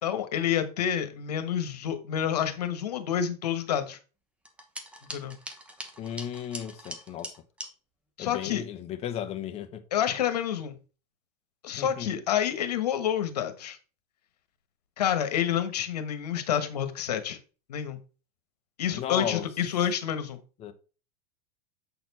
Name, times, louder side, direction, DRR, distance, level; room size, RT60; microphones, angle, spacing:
voice 1, 0.0-4.0 5.1-5.4 8.2-8.6 9.9-10.7 11.6-13.8 15.0-17.4 17.7-18.0 18.8-20.4, left 9 dB, 85° left, 1.3 m, -28 dB
sound 1, 4.4-7.7, right 1 dB, 5° right, 1.0 m, -42 dB
voice 2, 6.0-7.3 8.2-9.8 11.8-12.2 18.9-19.5 20.6-20.7, left 10 dB, 30° left, 0.9 m, -35 dB
7.5 x 4.2 x 4.2 m
supercardioid pair, 130°, 20 cm